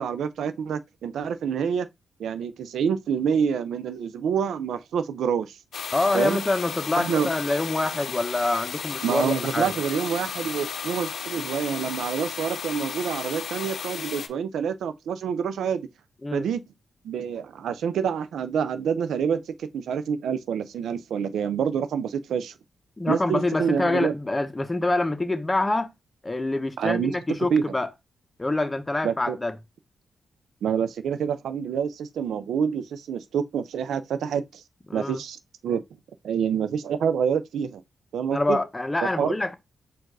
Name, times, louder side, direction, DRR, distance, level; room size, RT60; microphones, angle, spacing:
voice 1, 0.0-1.9 2.2-5.6 6.1-6.4 7.0-7.3 9.0-15.9 16.3-16.6 17.0-22.5 23.1-24.1 26.8-27.1 27.5-27.6 29.0-29.4 30.6-34.6 34.9-35.8 36.2-37.8 38.1-38.6 39.0-39.3, right 7 dB, 85° right, 0.4 m, -27 dB
sound 1, 5.7-14.3, left 6 dB, 70° left, 0.6 m, -34 dB
voice 2, 5.9-9.7 16.2-16.5 23.0-25.9 26.2-27.9 28.4-29.5 34.9-35.2 38.3-39.5, left 2 dB, 20° left, 0.8 m, -26 dB
4.5 x 2.4 x 4.6 m
cardioid pair, 65°, 0 cm